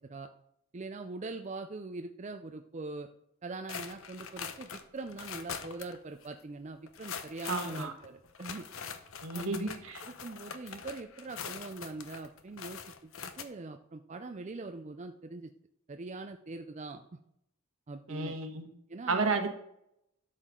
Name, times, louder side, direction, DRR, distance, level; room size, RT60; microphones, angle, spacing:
voice 1, 0.7-3.1 3.4-8.7 9.3-15.5 15.9-17.2 17.9-18.3 18.9-19.4, right 3 dB, 35° right, 6 dB, 0.4 m, -42 dB
sound 1, 3.7-6.0 6.2-6.3 6.9-13.4, left 7 dB, 70° left, 0.8 m, -43 dB
voice 2, 7.5-7.9 9.2-10.0 18.1-18.7 19.1-19.6, right 3 dB, 70° right, 6 dB, 1.4 m, -32 dB
12.5 x 6.7 x 3.8 m, 0.76 s
head